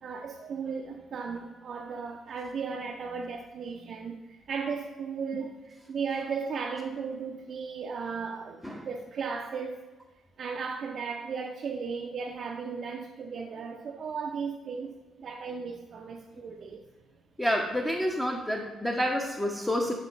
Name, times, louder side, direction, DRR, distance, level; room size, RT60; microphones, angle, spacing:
voice 1, 0.0-9.8 10.4-14.9 15.2-16.8, right 5 dB, 55° right, 0.5 m, -36 dB
voice 2, 17.4-19.9, equal, 10° left, 0.9 m, -28 dB
11.0 x 3.7 x 4.1 m
figure-of-eight pair, 40°, 0 cm